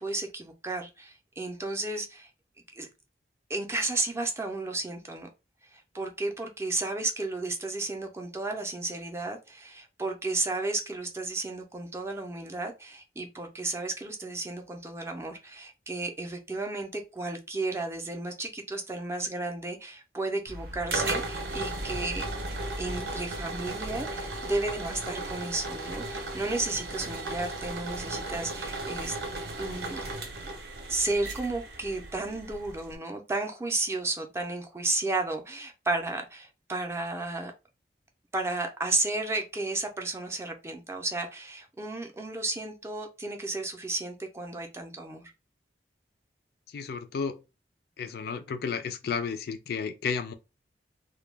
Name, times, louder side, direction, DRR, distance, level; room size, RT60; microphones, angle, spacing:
voice 1, 0.0-2.3 2.8-2.9 3.5-5.3 5.7-22.3 22.8-29.1 29.6-30.0 30.9-37.5 38.3-45.3, right 2 dB, 15° right, 0.4 m, -33 dB
sound 1, 20.5-33.0, right 2 dB, 65° right, 0.6 m, -36 dB
voice 2, 46.7-47.4 48.0-50.3, left 6 dB, 60° left, 0.3 m, -32 dB
2.2 x 2.1 x 3.2 m
head